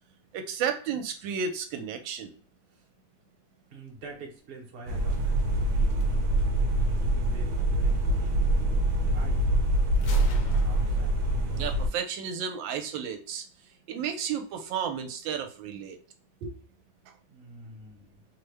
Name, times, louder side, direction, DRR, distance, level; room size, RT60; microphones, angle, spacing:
voice 1, 0.3-2.3 11.6-13.4 13.9-16.0 16.4-16.6, right 7 dB, 80° right, 5 dB, 1.3 m, -32 dB
voice 2, 3.7-6.5 7.1-9.5 10.1-11.2 17.3-18.2, right 1 dB, 50° right, 0 dB, 0.8 m, -46 dB
sound 1, 4.9-11.9, right 1 dB, 65° right, 1.2 m, -25 dB
Gunshot gunfire, 10.0-11.9, left 1 dB, 65° left, 1.3 m, -42 dB
3.3 x 2.1 x 3.2 m, 0.40 s
omnidirectional pair, 2.1 m